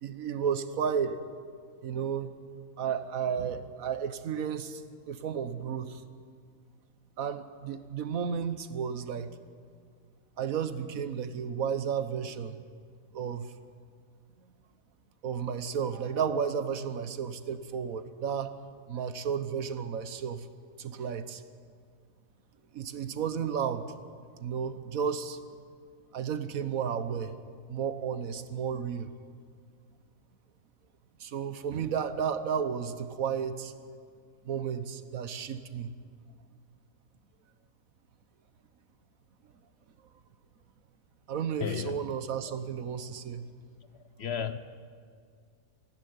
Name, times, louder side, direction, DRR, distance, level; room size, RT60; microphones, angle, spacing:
voice 1, 0.0-1.2 1.8-2.3 2.8-4.8 5.1-6.0 7.2-9.3 10.4-12.6 13.1-13.5 15.2-18.6 18.9-20.5 20.8-21.4 22.7-23.9 24.4-25.4 26.1-27.4 27.7-29.1 31.2-33.7 34.4-35.9 41.3-43.4, right 7 dB, 80° right, 12 dB, 1.4 m, -32 dB
voice 2, 41.6-42.0 42.5-42.6 44.2-44.6, left 7 dB, 55° left, 12 dB, 1.0 m, -33 dB
19.0 x 15.0 x 9.5 m, 2.1 s
omnidirectional pair, 1.4 m